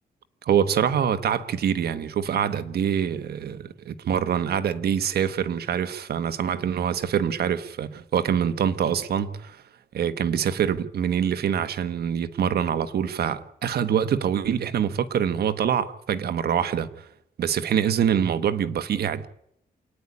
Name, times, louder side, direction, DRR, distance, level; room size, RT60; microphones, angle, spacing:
voice 1, 0.4-9.6 9.9-17.1 17.4-19.3, right 8 dB, 75° right, 1.3 m, -25 dB
28.0 x 9.9 x 9.8 m
cardioid pair, 115°, 16 cm